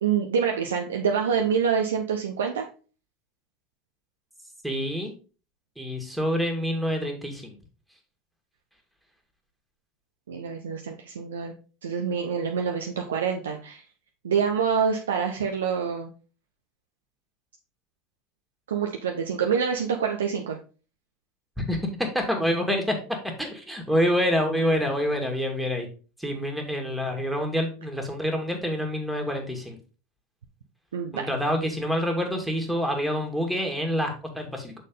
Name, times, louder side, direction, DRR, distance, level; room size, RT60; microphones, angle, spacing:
voice 1, 0.0-2.7 10.3-11.5 11.8-13.8 14.2-16.1 18.7-20.6 30.9-31.3, right 6 dB, 85° right, 2 dB, 0.7 m, -26 dB
voice 2, 4.6-5.1 5.8-7.6 21.6-25.9 26.2-29.8 31.1-34.7, equal, 5° right, 2 dB, 1.9 m, -27 dB
6.3 x 4.4 x 3.8 m, 0.35 s
hypercardioid pair, 90°, 0 cm